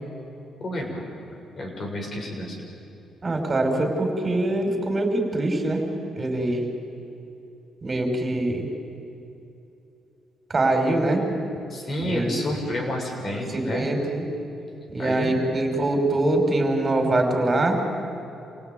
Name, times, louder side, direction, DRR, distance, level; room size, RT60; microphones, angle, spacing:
voice 1, 0.6-1.1 1.6-2.6 11.7-13.9 15.0-15.4, left 1 dB, 45° left, 0 dB, 7.4 m, -30 dB
voice 2, 3.2-5.8 6.2-6.6 7.8-8.7 10.5-11.2 12.1-12.4 13.5-14.2 14.9-17.8, right 2 dB, 30° right, 3 dB, 5.5 m, -23 dB
28.0 x 18.0 x 9.5 m, 2.9 s
cardioid pair, 90°, 0 cm